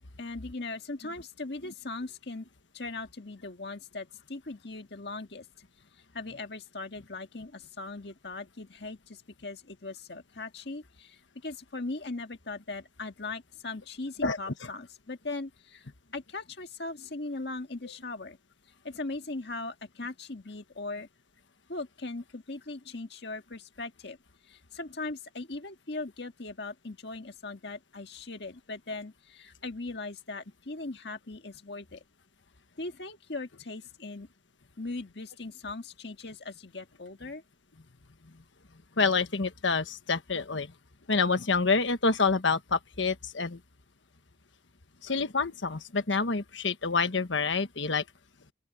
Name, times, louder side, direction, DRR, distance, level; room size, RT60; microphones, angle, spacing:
voice 1, 0.2-2.5 2.7-5.5 6.1-18.4 18.8-21.1 21.7-24.2 24.4-32.0 32.8-34.3 34.8-37.4, left 3 dB, 60° left, 1.8 m, -39 dB
voice 2, 39.0-40.7 41.1-43.6 45.0-48.0, left 4 dB, 85° left, 1.4 m, -27 dB
open air
head